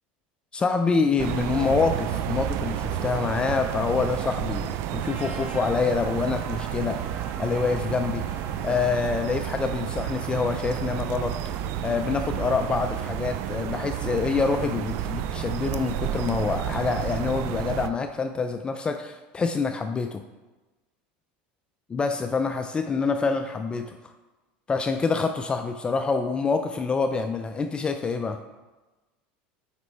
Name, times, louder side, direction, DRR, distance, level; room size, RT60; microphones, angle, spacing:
voice 1, 0.5-8.3 8.6-20.2 21.9-24.0 24.7-28.4, left 4 dB, 20° left, 7 dB, 0.3 m, -26 dB
sound 1, 1.2-17.9, right 11 dB, 55° right, 0.4 m, -31 dB
Trumpet, 5.0-9.3, right 1 dB, 25° right, 1.3 m, -44 dB
8.0 x 5.2 x 3.3 m, 1.2 s
supercardioid pair, 120°, 5 cm